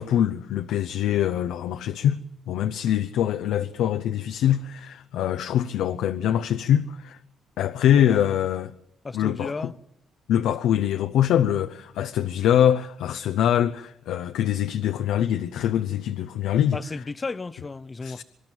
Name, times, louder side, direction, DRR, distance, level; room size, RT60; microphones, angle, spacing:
voice 1, 0.0-2.2 2.5-7.2 7.6-8.7 9.1-9.5 10.3-16.8 18.0-18.2, left 10 dB, 85° left, 0.8 m, -23 dB
voice 2, 7.9-8.3 9.0-9.7 16.7-18.2, left 3 dB, 30° left, 0.8 m, -34 dB
25.0 x 12.0 x 9.2 m
cardioid pair, 90°, 0 cm